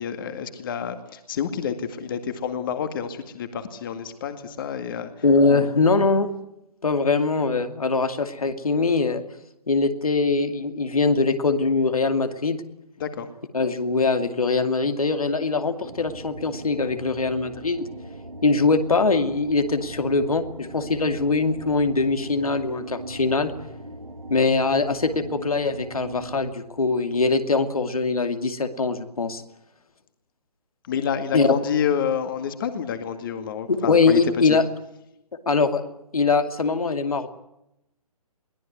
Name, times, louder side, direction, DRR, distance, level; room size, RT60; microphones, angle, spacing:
voice 1, 0.0-5.1 5.5-5.7 13.0-13.3 30.9-34.6, left 7 dB, 35° left, 9 dB, 2.1 m, -28 dB
voice 2, 5.2-6.3 6.8-9.2 9.7-12.6 13.5-17.9 18.4-23.5 24.3-29.4 31.3-31.6 33.7-34.6 35.5-35.8 36.1-37.3, left 4 dB, 65° left, 8 dB, 2.5 m, -22 dB
sound 1, 15.8-26.5, right 1 dB, 80° right, 3.5 m, -40 dB
22.5 x 18.0 x 9.7 m, 0.85 s
figure-of-eight pair, 140°, 20 cm